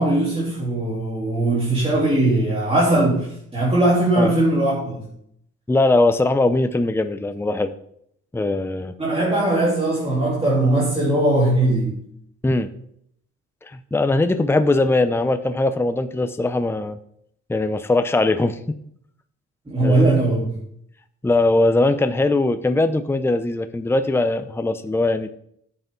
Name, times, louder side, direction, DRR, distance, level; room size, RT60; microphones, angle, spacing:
voice 1, 0.0-5.1 9.0-12.1 19.7-20.5, right 2 dB, 20° right, -6 dB, 3.6 m, -20 dB
voice 2, 5.7-7.7 8.3-8.9 12.4-12.7 13.6-17.0 17.5-18.6 19.8-20.1 21.2-25.3, left 2 dB, 10° left, 10 dB, 0.7 m, -20 dB
12.0 x 8.1 x 3.9 m, 0.70 s
cardioid pair, 90°, 30 cm